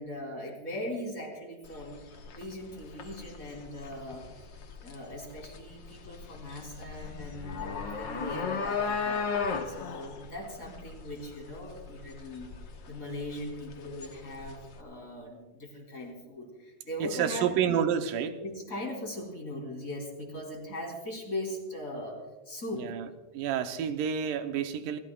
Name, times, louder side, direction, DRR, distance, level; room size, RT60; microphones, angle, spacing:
voice 1, 0.0-2.0 2.3-4.2 4.8-9.3 9.7-12.5 12.9-17.5 18.4-22.2 22.5-22.9, left 1 dB, 25° left, -1 dB, 3.6 m, -39 dB
sound 1, 1.6-14.8, left 5 dB, 65° left, 1.1 m, -37 dB
voice 2, 17.0-18.4 22.7-23.1 23.3-25.0, right 8 dB, 90° right, 8 dB, 2.4 m, -29 dB
29.0 x 15.0 x 2.3 m, 1.2 s
omnidirectional pair, 3.7 m